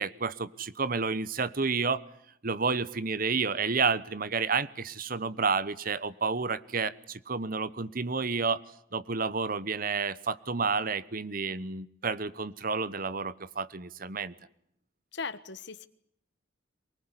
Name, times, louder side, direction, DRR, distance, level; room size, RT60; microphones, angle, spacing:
voice 1, 0.0-2.0 2.4-8.6 8.9-14.3, right 4 dB, 45° right, 16 dB, 1.0 m, -30 dB
voice 2, 15.1-15.9, left 4 dB, 60° left, 13 dB, 1.3 m, -38 dB
23.5 x 19.5 x 9.7 m, 0.70 s
head